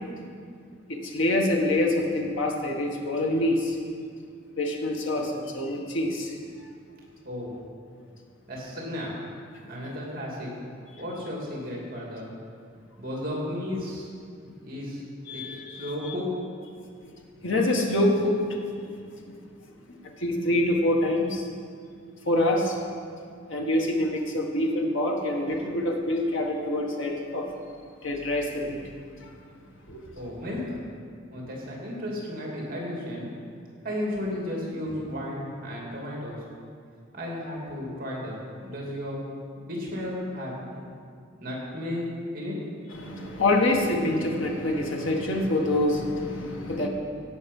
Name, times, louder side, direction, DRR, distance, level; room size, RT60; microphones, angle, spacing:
voice 1, 0.9-3.8 4.6-6.3 15.3-15.9 17.4-18.9 19.2-19.3 20.2-21.5 22.2-22.8 23.5-27.5 28.0-28.8 29.2-29.3 29.9-30.0 42.9-46.9, left 1 dB, 75° left, 1 dB, 1.5 m, -26 dB
voice 2, 7.2-7.6 8.5-9.2 9.7-10.5 11.0-12.3 13.0-14.1 14.5-15.0 15.3-15.4 15.8-16.3 30.1-30.8 31.3-33.3 33.8-36.4 37.1-39.2 39.6-40.8 41.4-42.1 42.3-42.6, left 1 dB, 45° right, -3 dB, 2.5 m, -34 dB
16.0 x 6.1 x 5.5 m, 2.2 s
head